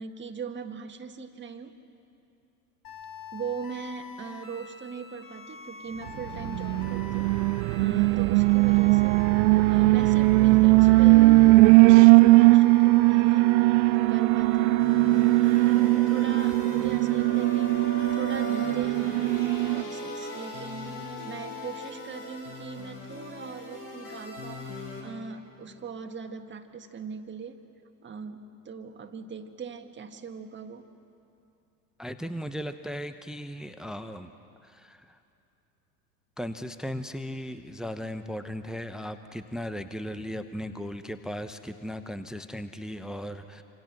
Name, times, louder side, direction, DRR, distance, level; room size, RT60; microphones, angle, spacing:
voice 1, 0.0-1.8 3.3-7.4 7.8-9.2 9.7-27.7 28.0-30.9, right 5 dB, 25° right, 5 dB, 1.9 m, -40 dB
sound 1, 2.8-21.9, left 4 dB, 45° left, 4.1 m, -42 dB
Alarm, 6.4-19.8, right 21 dB, 60° right, 0.5 m, -19 dB
sound 2, 14.8-25.0, left 1 dB, 85° left, 7.1 m, -42 dB
voice 2, 32.0-34.3 34.6-35.2 36.4-43.6, equal, ahead, 10 dB, 0.9 m, -37 dB
27.0 x 27.0 x 6.1 m, 2.7 s
hypercardioid pair, 80°, 46 cm